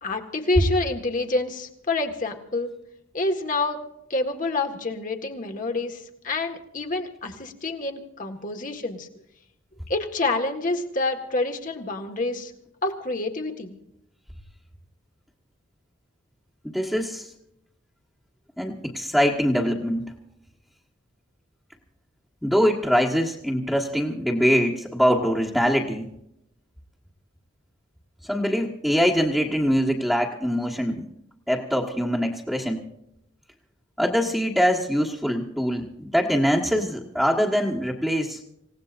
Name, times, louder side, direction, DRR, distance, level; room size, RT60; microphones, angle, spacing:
voice 1, 0.0-2.7 3.1-3.8 4.1-9.1 9.9-12.5 12.8-13.8, left 2 dB, 45° left, 3 dB, 1.8 m, -27 dB
voice 2, 16.6-17.3 18.6-20.1 22.4-26.1 28.2-31.0 31.5-32.8 34.0-38.4, equal, ahead, -5 dB, 1.5 m, -23 dB
27.5 x 17.5 x 2.6 m, 0.79 s
head